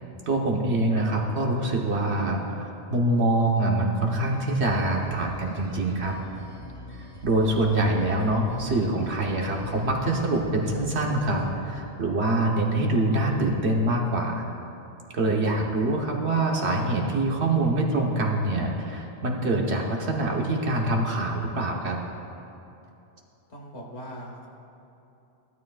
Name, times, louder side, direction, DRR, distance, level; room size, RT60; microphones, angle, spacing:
voice 1, 0.3-6.1 7.0-14.4 15.1-22.0, right 2 dB, 75° right, 0 dB, 1.4 m, -25 dB
sound 1, 4.2-11.5, equal, 35° left, 2.4 m, -44 dB
voice 2, 23.5-24.5, equal, 75° left, -1 dB, 1.9 m, -40 dB
16.0 x 12.0 x 2.4 m, 2.8 s
omnidirectional pair, 1.1 m